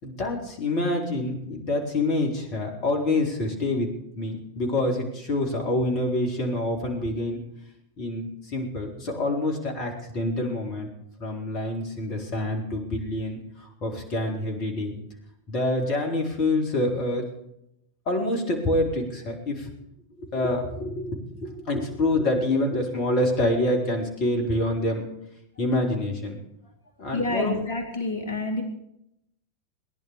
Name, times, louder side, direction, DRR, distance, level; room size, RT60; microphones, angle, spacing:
voice 1, 0.0-3.9 4.2-7.4 8.0-10.9 11.2-14.9 15.5-17.3 18.1-19.7 20.2-25.0 25.6-26.4 27.0-27.6, left 1 dB, 40° left, 2 dB, 4.2 m, -26 dB
voice 2, 27.1-28.6, left 2 dB, 55° left, 6 dB, 3.8 m, -28 dB
19.5 x 11.0 x 6.7 m, 0.78 s
figure-of-eight pair, 90°, 0 cm